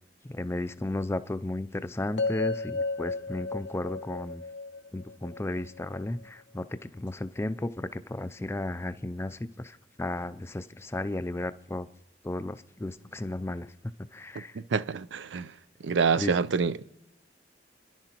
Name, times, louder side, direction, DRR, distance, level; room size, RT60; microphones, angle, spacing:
voice 1, 0.3-4.4 4.9-6.7 6.9-11.9 12.2-13.7 14.1-14.5 16.2-16.3, left 1 dB, 15° left, 0.4 m, -34 dB
sound 1, 2.2-6.3, left 3 dB, 90° left, 1.0 m, -34 dB
voice 2, 14.5-15.5 15.8-16.8, right 5 dB, 85° right, 0.5 m, -27 dB
29.5 x 11.0 x 3.0 m
head